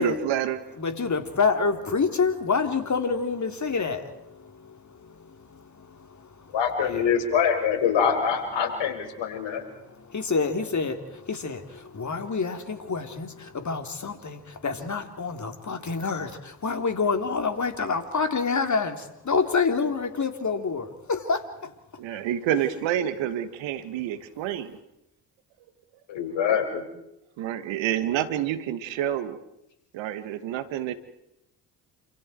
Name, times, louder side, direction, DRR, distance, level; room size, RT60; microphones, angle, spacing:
voice 1, 0.0-0.6 22.0-24.8 27.4-29.4 29.9-30.9, right 11 dB, 70° right, 11 dB, 2.1 m, -28 dB
voice 2, 0.8-7.0 8.6-8.8 9.2-21.7 22.1-22.2, left 4 dB, 35° left, 6 dB, 4.0 m, -28 dB
voice 3, 6.5-9.6 26.1-26.8, left 7 dB, 65° left, 5 dB, 6.2 m, -24 dB
29.5 x 27.5 x 4.7 m, 0.84 s
hypercardioid pair, 50°, 47 cm